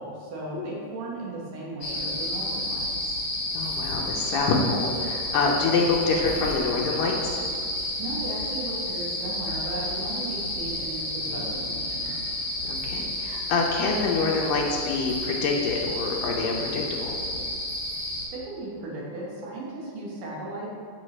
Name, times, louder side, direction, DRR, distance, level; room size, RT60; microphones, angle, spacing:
voice 1, 0.0-3.2 8.0-12.1 18.3-20.7, right 2 dB, 75° right, -3 dB, 2.6 m, -36 dB
sound 1, 1.8-18.3, left 1 dB, 55° left, 1.6 m, -31 dB
voice 2, 3.5-7.4 11.3-11.5 12.6-17.1, left 4 dB, 85° left, -1 dB, 2.3 m, -26 dB
7.4 x 5.6 x 3.2 m, 2.2 s
omnidirectional pair, 3.9 m